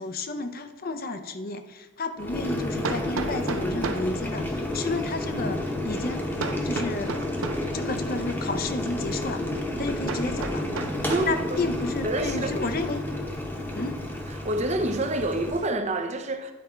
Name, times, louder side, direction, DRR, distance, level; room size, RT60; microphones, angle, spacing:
voice 1, 0.0-6.3 6.6-7.2 7.7-9.4 9.8-10.7 11.2-13.0 13.7-14.0, left 3 dB, 45° left, 8 dB, 0.5 m, -31 dB
Hammer, 1.2-1.3 2.8-4.1 6.4-7.7 10.1-11.4, right 3 dB, 85° right, 0.6 m, -33 dB
Boiling, 2.2-15.7, left 1 dB, 10° left, 0.9 m, -31 dB
voice 2, 11.1-11.6 12.0-12.5 14.3-16.5, right 2 dB, 35° right, 7 dB, 0.6 m, -28 dB
10.5 x 4.1 x 4.4 m, 1.3 s
head